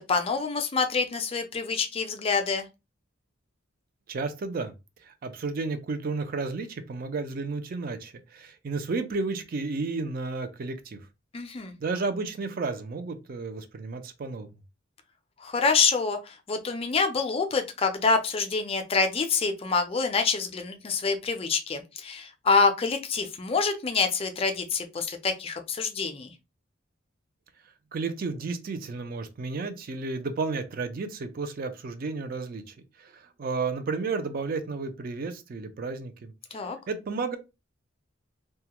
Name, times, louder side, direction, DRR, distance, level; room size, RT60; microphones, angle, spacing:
voice 1, 0.1-2.7 11.3-11.7 15.4-26.3 36.5-36.8, left 4 dB, 30° left, 0.4 m, -26 dB
voice 2, 4.1-4.7 5.0-11.0 11.8-14.5 27.9-36.3 36.9-37.4, right 4 dB, 45° right, 0.4 m, -32 dB
2.3 x 2.0 x 2.8 m
head